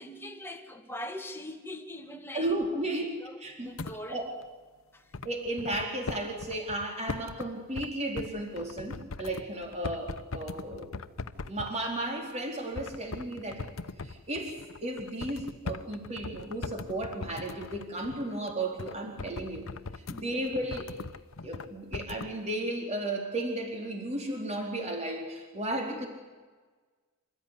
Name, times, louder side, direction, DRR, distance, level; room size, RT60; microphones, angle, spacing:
voice 1, 0.0-2.6 3.2-4.2 4.9-5.1 20.1-20.5 25.9-26.0, left 1 dB, 10° left, 2.0 m, -42 dB
voice 2, 2.3-3.1 3.4-3.7 4.1-4.3 5.2-10.9 11.5-14.5 14.8-19.6 20.1-20.9 21.4-26.1, right 1 dB, 30° right, 4.1 m, -34 dB
sound 1, 3.8-4.0 4.4-4.5 5.1-7.5 7.8-7.9 8.2-11.8 12.3-12.4 12.8-21.7 21.9-22.3, left 3 dB, 70° left, 0.9 m, -40 dB
27.0 x 14.5 x 9.9 m
head